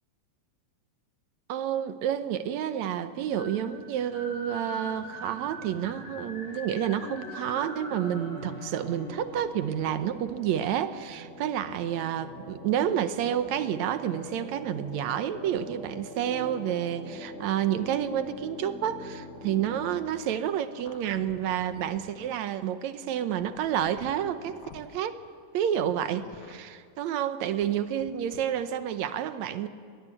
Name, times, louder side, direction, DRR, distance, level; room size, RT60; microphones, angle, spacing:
voice 1, 1.5-25.2 25.5-29.7, right 10 dB, 70° right, 11 dB, 2.0 m, -29 dB
sound 1, 3.1-20.2, left 1 dB, 70° left, 6.1 m, -43 dB
sound 2, 20.8-22.4 23.3-25.1 26.0-26.6 27.5-28.4, left 4 dB, 45° left, 1.2 m, -49 dB
22.5 x 18.5 x 7.7 m, 2.2 s
omnidirectional pair, 3.6 m